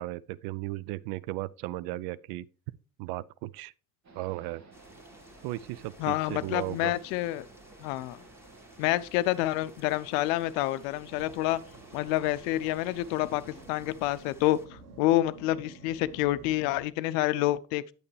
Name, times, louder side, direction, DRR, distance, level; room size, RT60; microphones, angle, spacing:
voice 1, 0.0-2.5 3.0-3.7 4.2-4.6 5.4-6.9, right 17 dB, 55° right, 0.5 m, -36 dB
sound 1, 4.0-13.7, right 4 dB, 35° right, 1.7 m, -54 dB
sound 2, 4.7-14.7, left 1 dB, 5° right, 1.6 m, -56 dB
voice 2, 6.0-7.5 7.8-8.2 8.8-11.6 11.9-17.8, left 16 dB, 60° left, 0.6 m, -28 dB
sound 3, 11.0-16.9, right 2 dB, 90° right, 1.2 m, -51 dB
8.6 x 8.2 x 3.2 m
figure-of-eight pair, 60°, 46 cm